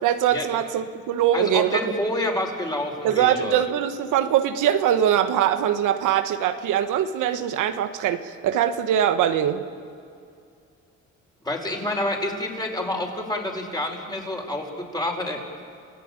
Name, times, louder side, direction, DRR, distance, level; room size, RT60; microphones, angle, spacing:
voice 1, 0.0-1.9 3.0-9.6, right 10 dB, 90° right, 8 dB, 1.3 m, -22 dB
voice 2, 1.3-3.6 11.4-15.4, left 1 dB, 15° left, 1 dB, 5.2 m, -28 dB
28.5 x 16.0 x 8.9 m, 2.4 s
cardioid pair, 90°, 30 cm